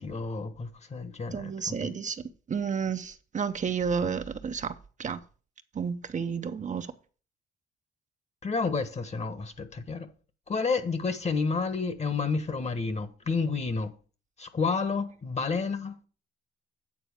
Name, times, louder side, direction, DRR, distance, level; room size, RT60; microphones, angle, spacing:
voice 1, 0.0-2.0 8.4-10.1 10.5-13.9 14.4-16.1, left 4 dB, 35° left, 1.2 m, -30 dB
voice 2, 1.3-2.2 2.5-4.7 5.0-5.2 5.8-6.9, right 6 dB, 40° right, 0.7 m, -31 dB
8.7 x 4.1 x 7.0 m
cardioid pair, 90°, 20 cm